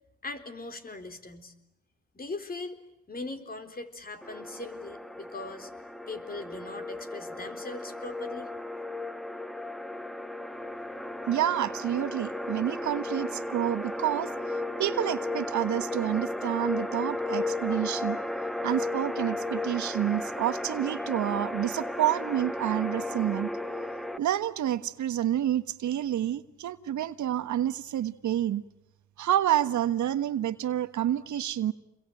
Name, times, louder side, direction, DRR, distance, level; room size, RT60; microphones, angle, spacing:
voice 1, 0.2-1.5 2.1-2.8 3.1-5.7 6.1-8.5, left 3 dB, 30° left, 8 dB, 4.1 m, -40 dB
sound 1, 4.2-24.2, left 1 dB, ahead, 1.3 m, -34 dB
voice 2, 11.3-14.3 14.8-18.2 18.6-23.5 24.2-28.6 29.2-31.7, right 11 dB, 70° right, 12 dB, 1.5 m, -28 dB
29.0 x 22.5 x 9.2 m, 0.85 s
cardioid pair, 90°, 30 cm